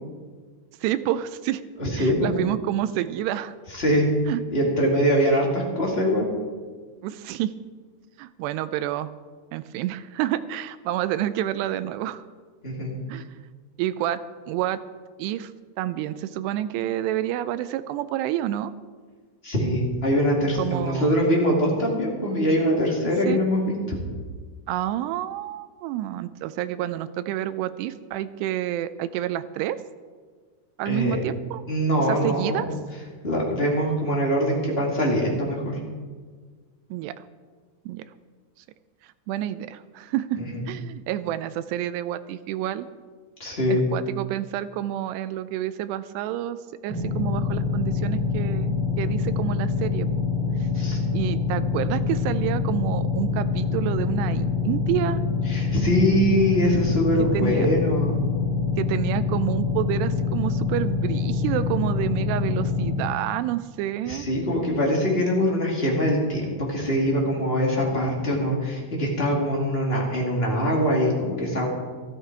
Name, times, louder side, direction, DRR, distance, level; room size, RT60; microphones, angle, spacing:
voice 1, 0.8-1.6 2.0-3.5 4.3-4.4 5.2-5.3 7.0-7.5 8.2-9.1 9.5-12.2 13.1-13.4 13.8-14.2 14.5-14.8 15.2-15.5 15.8-18.7 20.6-21.1 23.3-23.4 24.7-29.8 30.8-31.6 32.0-32.7 36.9-37.2 37.9-38.0 39.0-40.4 40.7-42.9 43.7-46.6 46.8-50.1 50.6-50.9 51.1-55.2 57.2-57.7 58.8-64.3, right 12 dB, 85° right, 13 dB, 2.5 m, -29 dB
voice 2, 1.8-2.3 3.7-4.1 4.5-6.3 12.6-12.9 19.4-23.6 23.9-24.0 30.8-31.2 31.7-32.6 33.2-35.8 40.5-40.6 43.4-43.8 50.7-51.0 55.5-58.2 64.0-71.7, equal, 25° left, -2 dB, 1.3 m, -23 dB
sound 1, 46.9-62.9, left 5 dB, 30° right, 3.4 m, -25 dB
14.0 x 13.5 x 4.6 m, 1.5 s
omnidirectional pair, 5.1 m